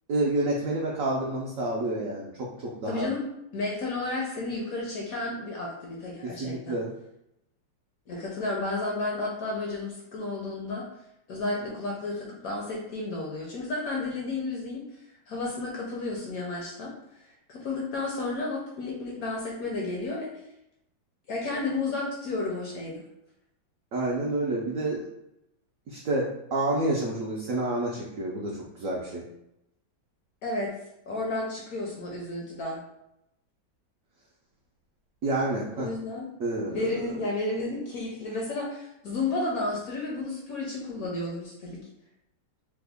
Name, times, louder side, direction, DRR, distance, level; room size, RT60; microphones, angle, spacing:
voice 1, 0.1-3.1 6.4-6.9 23.9-25.1 25.9-29.3 35.2-35.9 36.4-36.9, right 2 dB, 75° right, -3 dB, 0.7 m, -29 dB
voice 2, 2.9-3.3 3.5-6.8 8.1-10.8 11.3-14.8 15.3-16.9 17.5-20.3 21.3-23.0 30.4-30.7 31.1-32.8 35.7-36.3 36.7-41.8, left 2 dB, 65° left, -2 dB, 0.9 m, -32 dB
3.3 x 2.1 x 3.4 m, 0.84 s
omnidirectional pair, 2.0 m